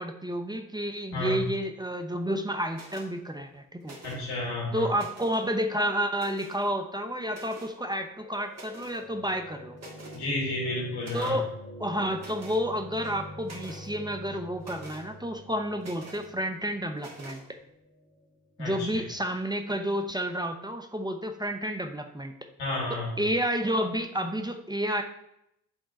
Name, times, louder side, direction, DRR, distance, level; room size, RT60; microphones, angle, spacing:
voice 1, 0.0-4.0 4.7-9.8 11.1-11.5 11.8-17.4 18.6-22.4 22.9-25.0, equal, 10° right, 5 dB, 0.8 m, -30 dB
voice 2, 1.1-1.4 4.0-4.9 10.1-11.4 18.6-18.9 22.6-23.1, left 2 dB, 80° left, -2 dB, 2.1 m, -31 dB
sound 1, 2.7-3.1 3.8-4.4 4.8-5.4 6.1-6.7 7.3-7.8 8.5-9.0 9.4-9.5 9.8-10.2 11.0-11.4 12.2-12.6 13.0-13.9 14.6-15.0 15.8-16.3 17.0-17.4, right 2 dB, 40° right, 1.9 m, -46 dB
sound 2, 7.6-19.7, equal, 30° left, 2.2 m, -47 dB
8.9 x 3.7 x 4.1 m, 0.78 s
hypercardioid pair, 40°, 39 cm